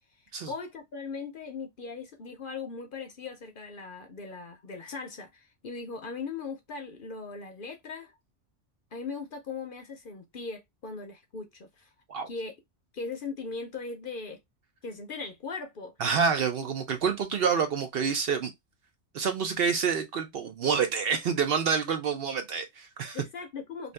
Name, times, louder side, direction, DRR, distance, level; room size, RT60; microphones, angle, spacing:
voice 1, 0.5-8.1 8.9-11.9 12.3-12.5 12.9-14.4 14.8-15.9 16.6-16.7 23.1-23.9, left 4 dB, 55° left, 0.7 m, -39 dB
voice 2, 16.0-18.5 19.1-23.2, right 6 dB, 60° right, 0.7 m, -27 dB
2.6 x 2.5 x 3.1 m
omnidirectional pair, 1.2 m